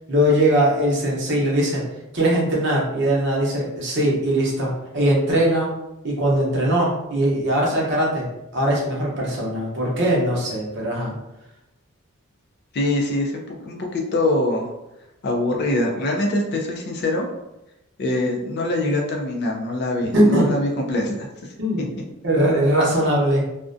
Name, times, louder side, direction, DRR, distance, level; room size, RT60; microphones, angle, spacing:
voice 1, 0.1-1.8 2.1-5.7 6.0-8.3 8.5-11.2 20.1-20.5 21.6-21.8 22.2-23.4, right 1 dB, 55° right, -3 dB, 0.7 m, -20 dB
voice 2, 12.7-14.7 15.2-17.3 18.0-21.3, left 1 dB, 50° left, 1 dB, 0.4 m, -23 dB
2.4 x 2.1 x 2.5 m, 0.92 s
head